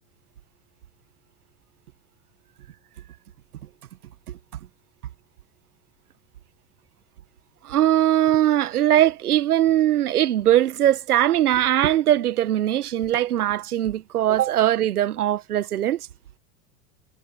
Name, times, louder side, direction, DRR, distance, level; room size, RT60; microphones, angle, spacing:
voice 1, 7.6-16.0, right 12 dB, 80° right, 1.3 m, -20 dB
hypercardioid pair, 90°, 45 cm